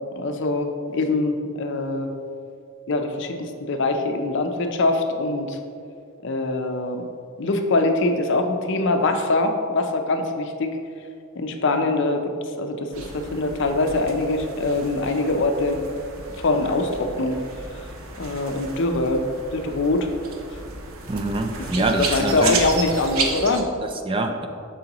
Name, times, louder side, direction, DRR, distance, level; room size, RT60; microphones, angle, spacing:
voice 1, 0.2-2.1 2.9-5.6 6.2-7.1 7.4-10.8 11.4-12.2 12.6-15.8 16.4-17.4 18.2-19.2 19.5-20.1 22.0-23.7, left 2 dB, 55° left, 5 dB, 0.5 m, -23 dB
sound 1, 12.9-23.6, right 4 dB, 75° right, 0.8 m, -33 dB
voice 2, 21.1-22.7 23.8-24.5, right 2 dB, 25° right, 5 dB, 0.4 m, -25 dB
7.7 x 6.2 x 2.9 m, 2.5 s
head